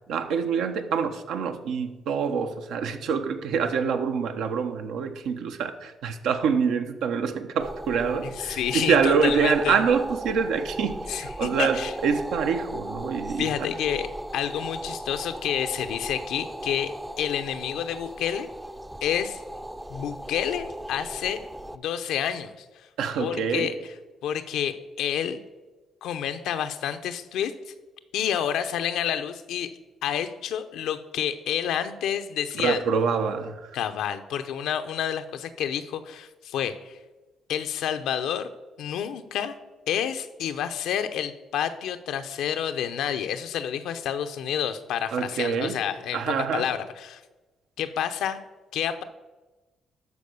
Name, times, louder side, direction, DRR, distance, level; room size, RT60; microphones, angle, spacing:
voice 1, 0.1-13.5 23.0-23.7 32.5-33.8 45.1-45.8 46.1-46.7, right 6 dB, 85° right, 1.0 m, -26 dB
sound 1, 7.6-21.8, right 1 dB, 10° right, 0.5 m, -37 dB
voice 2, 8.4-9.8 11.1-11.9 13.4-14.1 14.3-18.5 19.0-19.4 19.9-21.4 21.7-22.9 23.2-23.7 24.2-25.4 26.0-27.5 28.1-29.7 30.0-32.8 33.7-37.0 37.5-38.5 38.8-39.5 39.9-46.2 46.5-47.2 47.8-48.4 48.7-49.0, left 9 dB, 85° left, 0.8 m, -29 dB
12.5 x 4.7 x 6.7 m
cardioid pair, 90°, 0 cm